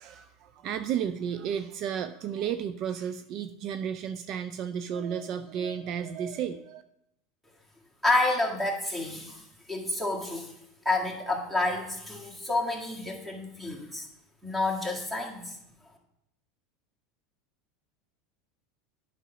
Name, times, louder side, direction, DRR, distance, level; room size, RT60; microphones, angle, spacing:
voice 1, 0.0-6.8, right 8 dB, 50° right, 11 dB, 0.3 m, -33 dB
voice 2, 8.0-9.4 9.7-10.5 10.9-14.1 14.4-15.6, left 2 dB, 5° right, 0 dB, 1.8 m, -29 dB
9.2 x 5.8 x 3.9 m, 0.82 s
supercardioid pair, 110°, 0 cm